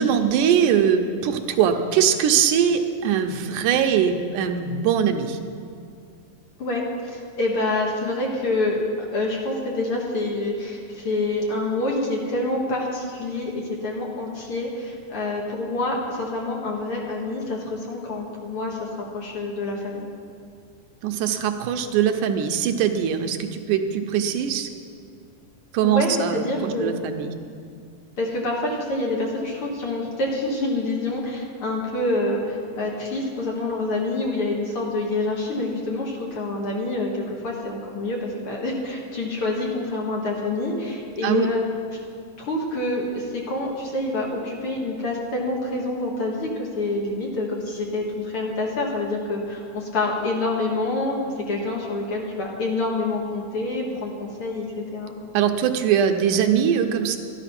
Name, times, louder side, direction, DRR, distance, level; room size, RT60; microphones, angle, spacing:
voice 1, 0.0-5.4 21.0-24.7 25.7-27.3 41.2-41.5 55.3-57.2, right 8 dB, 85° right, 6 dB, 2.3 m, -21 dB
voice 2, 6.6-8.8 9.1-18.9 19.1-20.1 25.8-27.0 28.2-41.6 42.4-51.2 51.5-55.1, left 2 dB, 50° left, -2 dB, 2.1 m, -27 dB
12.5 x 11.0 x 5.8 m, 2.3 s
omnidirectional pair, 3.6 m